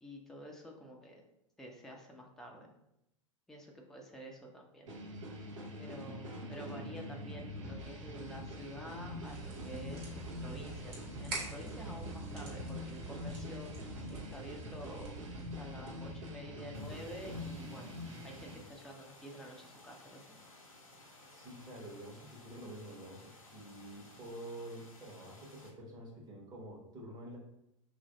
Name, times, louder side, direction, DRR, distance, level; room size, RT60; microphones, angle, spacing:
voice 1, 0.0-1.2 1.6-2.7 3.5-4.9 5.8-13.7 14.1-15.2 15.6-17.9 18.2-20.4, equal, ahead, 0 dB, 0.5 m, -49 dB
sound 1, 4.9-18.6, left 1 dB, 65° right, 0.8 m, -44 dB
sound 2, 9.2-16.3, right 3 dB, 45° right, 1.2 m, -46 dB
sound 3, 16.7-25.7, left 2 dB, 80° left, 0.7 m, -57 dB
voice 2, 21.3-27.4, right 1 dB, 20° right, -1 dB, 1.0 m, -48 dB
3.0 x 2.5 x 3.9 m, 0.83 s
figure-of-eight pair, 90°, 17 cm